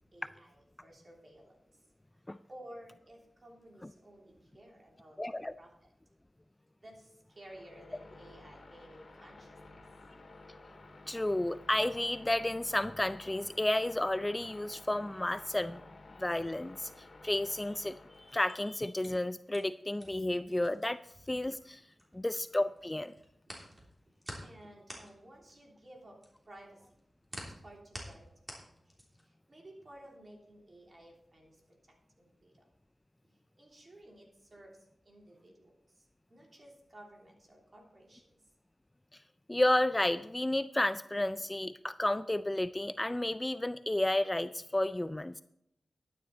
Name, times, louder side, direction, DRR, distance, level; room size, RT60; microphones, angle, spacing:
voice 1, 0.1-1.8 2.1-5.2 5.6-5.9 6.8-9.6 10.0-10.1 24.4-27.0 27.4-28.9 29.2-32.7 33.2-38.4, right 1 dB, 40° right, -1 dB, 3.2 m, -55 dB
voice 2, 5.2-5.5 11.1-15.8 16.2-21.0 21.3-21.8 22.1-23.1 39.5-45.4, left 1 dB, 15° left, 13 dB, 0.3 m, -32 dB
sound 1, 7.3-18.8, left 2 dB, 50° left, 2.0 m, -54 dB
sound 2, 18.5-22.5 22.8-29.3, equal, 20° right, 3.3 m, -49 dB
12.0 x 9.6 x 4.2 m, 0.78 s
wide cardioid pair, 75°, 0 cm